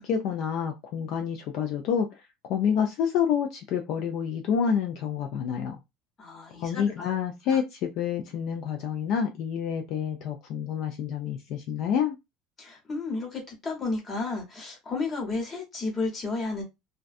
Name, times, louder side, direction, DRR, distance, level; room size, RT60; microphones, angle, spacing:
voice 1, 0.0-2.1 2.4-5.8 6.6-12.2, left 7 dB, 50° left, 0.4 m, -28 dB
voice 2, 6.2-7.2 7.5-7.6 12.6-16.6, left 3 dB, 20° left, 0.9 m, -32 dB
2.5 x 2.2 x 2.4 m
cardioid pair, 165°, 0 cm